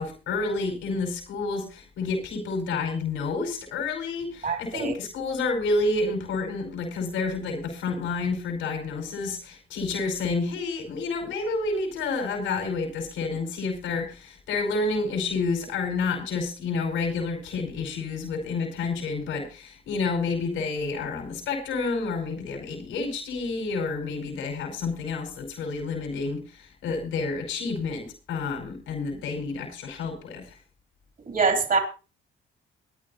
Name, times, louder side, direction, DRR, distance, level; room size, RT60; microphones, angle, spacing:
voice 1, 0.0-30.6, left 3 dB, 90° left, 3 dB, 5.2 m, -29 dB
voice 2, 4.4-4.9 31.3-31.8, right 4 dB, 45° right, 3 dB, 3.1 m, -24 dB
22.5 x 10.0 x 2.8 m, 0.32 s
cardioid pair, 90°, 20 cm